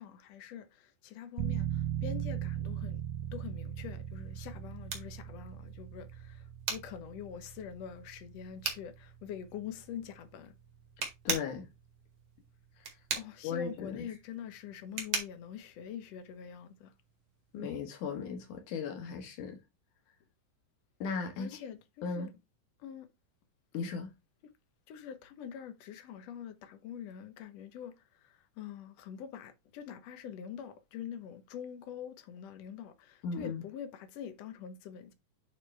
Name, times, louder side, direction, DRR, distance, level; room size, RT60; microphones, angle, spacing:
voice 1, 0.0-3.0 3.3-6.4 6.7-10.5 13.2-16.9 21.4-22.3 22.8-23.1 24.9-28.0 28.6-35.1, left 9 dB, 65° left, 2.0 m, -45 dB
sound 1, 1.4-11.9, right 11 dB, 80° right, 2.2 m, -40 dB
sound 2, 4.1-16.7, right 4 dB, 45° right, 2.7 m, -41 dB
voice 2, 11.2-11.7 13.4-14.1 17.5-19.6 21.0-21.6 22.0-22.3 23.7-24.1 33.2-33.6, left 5 dB, 85° left, 3.1 m, -36 dB
9.6 x 4.0 x 3.3 m
omnidirectional pair, 3.5 m